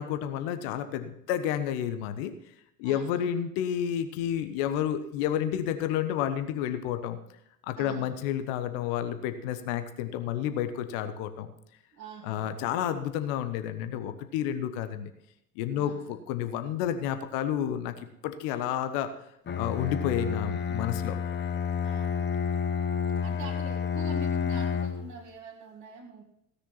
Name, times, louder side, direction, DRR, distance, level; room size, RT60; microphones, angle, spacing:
voice 1, 0.0-2.3 2.8-7.2 7.6-11.5 12.2-15.1 15.6-17.9 18.2-19.1 19.6-21.2, left 10 dB, 50° left, 9 dB, 1.2 m, -30 dB
voice 2, 2.8-3.3 7.8-8.1 12.0-12.6 15.7-16.2 21.8-22.5 23.2-26.2, right 5 dB, 40° right, -3 dB, 2.1 m, -45 dB
Bowed string instrument, 19.5-25.1, left 6 dB, 20° left, 1.0 m, -30 dB
16.5 x 6.8 x 5.7 m, 0.79 s
figure-of-eight pair, 70°, 49 cm